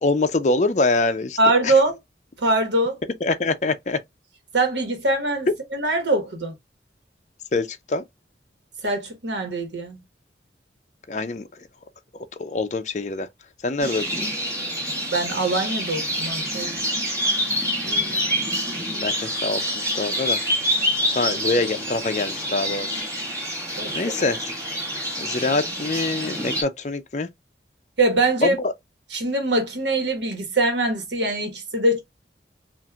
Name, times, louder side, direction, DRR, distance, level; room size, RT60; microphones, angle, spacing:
voice 1, 0.0-1.4 1.6-1.7 3.2-4.0 7.5-8.0 11.1-11.5 12.4-13.3 13.6-14.3 17.8-18.2 18.8-20.4 21.1-23.1 23.7-24.4 25.2-27.3 28.4-28.7, left 3 dB, 40° left, 0.5 m, -25 dB
voice 2, 1.4-2.0 2.4-3.0 4.5-6.5 8.8-10.0 15.1-16.8 23.8-24.3 28.0-28.6 29.1-32.0, right 2 dB, 80° right, 1.3 m, -23 dB
sound 1, 13.8-26.6, equal, 20° right, 1.6 m, -27 dB
5.8 x 2.5 x 2.4 m
head